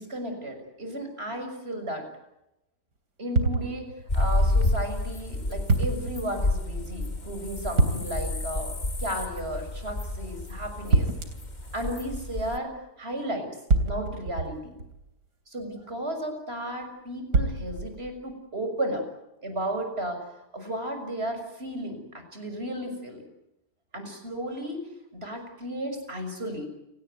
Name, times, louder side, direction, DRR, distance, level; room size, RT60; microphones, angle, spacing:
voice 1, 0.0-2.0 3.2-11.1 11.7-13.5 13.8-14.8 15.5-19.1 19.4-23.2 23.9-24.8 25.1-26.7, right 1 dB, 35° right, 6 dB, 6.7 m, -34 dB
sound 1, 3.4-4.1 5.7-6.2 7.8-8.4 10.9-11.5 13.7-15.1 17.3-18.2, right 3 dB, 75° right, 3.8 m, -26 dB
sound 2, 4.1-12.6, left 2 dB, 25° left, 2.0 m, -30 dB
29.5 x 18.5 x 9.6 m, 0.90 s
omnidirectional pair, 1.8 m